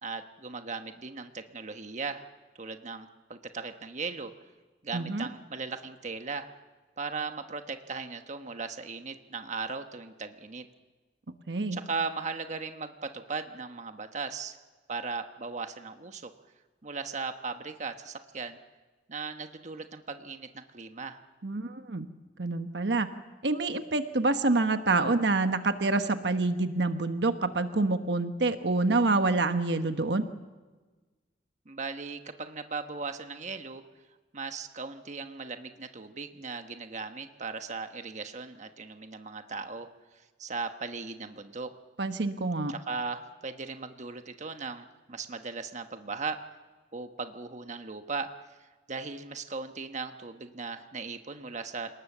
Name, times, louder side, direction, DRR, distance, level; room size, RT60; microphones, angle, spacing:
voice 1, 0.0-2.2 2.6-4.3 4.8-6.5 7.0-10.7 11.7-14.6 14.9-16.3 16.8-18.6 19.1-21.2 31.7-33.8 34.3-41.7 42.7-46.4 46.9-48.3 48.9-51.9, right 4 dB, 45° right, 7 dB, 1.2 m, -37 dB
voice 2, 4.9-5.3 11.5-11.8 21.4-22.1 22.4-23.1 23.4-30.2 42.0-42.7, right 3 dB, 75° right, 8 dB, 1.2 m, -27 dB
28.0 x 19.0 x 7.2 m, 1.3 s
head